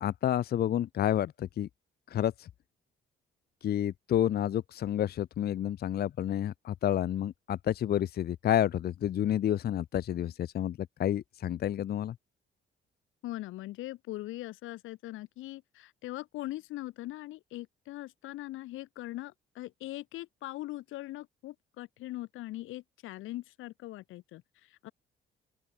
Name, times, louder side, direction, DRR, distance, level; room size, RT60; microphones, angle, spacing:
voice 1, 0.0-1.7 2.1-2.5 3.6-12.1, left 11 dB, 55° left, 0.6 m, -30 dB
voice 2, 13.2-24.9, left 16 dB, 90° left, 1.1 m, -41 dB
open air
cardioid pair, 90°, 20 cm